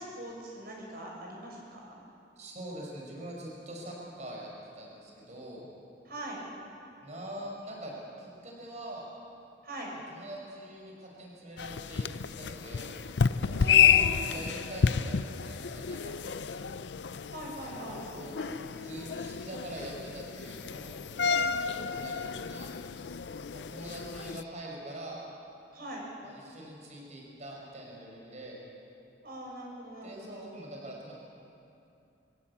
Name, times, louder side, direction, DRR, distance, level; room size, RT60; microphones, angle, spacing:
voice 1, 0.0-1.9 6.0-6.4 9.6-9.9 13.6-14.5 17.3-18.1 18.4-19.1 25.7-26.1 29.2-30.5, right 1 dB, 55° right, -2 dB, 6.5 m, -41 dB
voice 2, 2.4-4.5 4.7-5.7 7.0-9.1 10.1-13.0 13.5-16.8 18.1-18.4 18.8-22.7 23.5-25.2 26.2-28.6 30.0-31.1, right 1 dB, 40° right, -2 dB, 5.3 m, -44 dB
sound 1, 11.6-24.4, left 7 dB, 75° left, 0.5 m, -30 dB
23.5 x 17.5 x 8.6 m, 2.7 s
head